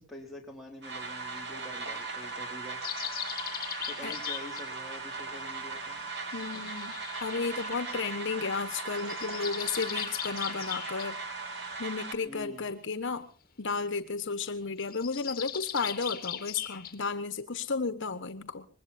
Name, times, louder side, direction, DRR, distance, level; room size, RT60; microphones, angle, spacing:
voice 1, 0.0-3.1 3.9-6.1 6.5-6.6 12.3-12.7, left 1 dB, ahead, -3 dB, 3.8 m, -46 dB
sound 1, 0.8-12.2, right 3 dB, 60° right, 3.3 m, -38 dB
sound 2, 2.8-4.7 6.3-8.2 8.9-11.1 14.8-16.9, left 11 dB, 45° left, 2.2 m, -39 dB
voice 2, 6.3-6.9 7.2-11.2 11.8-13.3 13.6-18.7, left 4 dB, 65° left, 10 dB, 1.3 m, -33 dB
24.0 x 21.0 x 2.7 m, 0.38 s
head